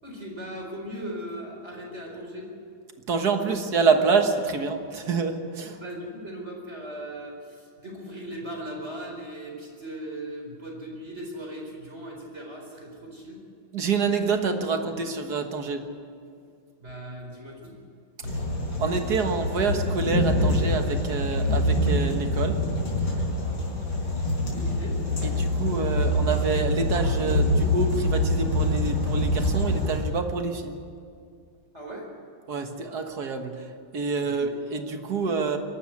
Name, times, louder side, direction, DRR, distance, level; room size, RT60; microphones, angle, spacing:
voice 1, 0.0-2.5 3.4-3.6 5.7-13.4 16.8-17.7 24.5-25.0 31.7-32.1 34.2-34.4, right 1 dB, 35° right, 0 dB, 4.6 m, -38 dB
voice 2, 3.1-5.8 13.7-15.8 18.8-22.6 25.2-30.8 32.5-33.5 33.9-35.6, right 4 dB, 55° right, 6 dB, 1.9 m, -27 dB
thunder light rain, 18.2-30.0, left 1 dB, 70° left, 5.4 m, -25 dB
23.0 x 12.5 x 9.8 m, 2.3 s
omnidirectional pair, 2.2 m